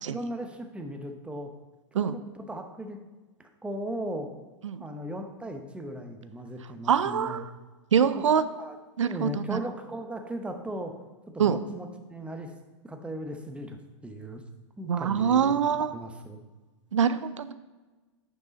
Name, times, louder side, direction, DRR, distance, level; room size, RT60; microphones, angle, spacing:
voice 1, 0.1-1.5 1.9-3.0 3.4-4.3 4.8-7.4 8.5-8.8 9.0-11.0 11.3-12.5 12.8-14.4 14.8-16.4, equal, 5° right, 5 dB, 0.9 m, -37 dB
voice 2, 6.9-7.5 7.9-8.4 9.0-9.6 11.4-11.6 14.9-15.9 16.9-17.5, right 7 dB, 90° right, 13 dB, 0.5 m, -24 dB
9.2 x 5.4 x 4.0 m, 1.2 s
hypercardioid pair, 105°, 15 cm